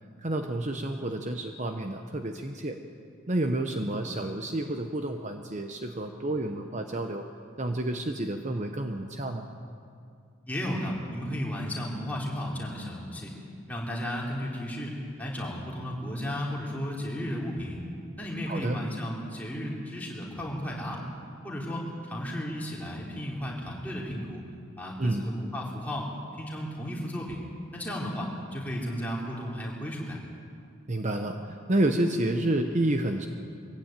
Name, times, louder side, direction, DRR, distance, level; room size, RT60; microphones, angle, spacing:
voice 1, 0.2-2.8 3.3-7.3 7.6-9.5 18.5-18.8 25.0-25.3 30.9-33.3, right 1 dB, 35° right, 5 dB, 0.9 m, -29 dB
voice 2, 10.5-13.3 13.7-17.8 18.2-21.0 21.4-24.4 24.8-27.4 27.7-30.2, equal, 10° left, -3 dB, 3.6 m, -34 dB
22.0 x 15.5 x 9.0 m, 2.4 s
head